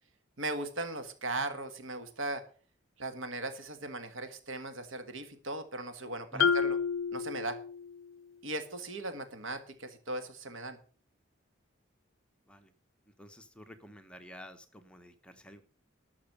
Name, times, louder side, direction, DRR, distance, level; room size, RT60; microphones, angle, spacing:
voice 1, 0.4-2.4 3.0-6.8 7.1-7.6 8.4-10.8, right 2 dB, 85° right, 9 dB, 1.7 m, -38 dB
Marimba xylophone, 6.4-8.2, left 6 dB, 80° left, 0.5 m, -30 dB
voice 2, 13.1-15.6, equal, 5° left, 6 dB, 1.0 m, -50 dB
12.0 x 7.3 x 6.7 m, 0.42 s
head